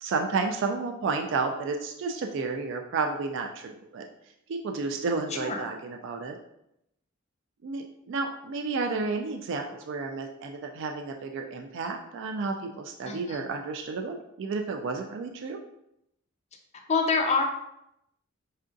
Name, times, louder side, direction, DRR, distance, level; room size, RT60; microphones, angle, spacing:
voice 1, 0.0-4.1 4.5-6.4 7.6-15.6, right 4 dB, 60° right, 4 dB, 0.3 m, -31 dB
voice 2, 13.1-13.5 16.9-17.4, left 4 dB, 35° left, 4 dB, 0.5 m, -26 dB
5.4 x 2.5 x 2.5 m, 0.80 s
head